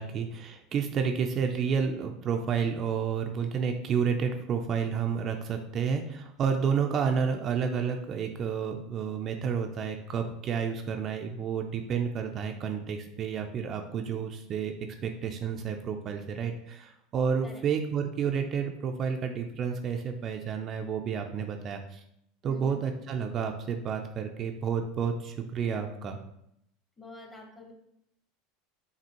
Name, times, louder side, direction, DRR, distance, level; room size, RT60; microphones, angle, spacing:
voice 1, 0.0-14.7 15.0-22.0 22.4-26.2, right 6 dB, 40° right, 4 dB, 0.4 m, -30 dB
voice 2, 22.4-22.8 27.0-27.7, left 2 dB, 20° left, 1 dB, 1.0 m, -47 dB
5.1 x 2.7 x 2.9 m, 0.75 s
hypercardioid pair, 100°, 0 cm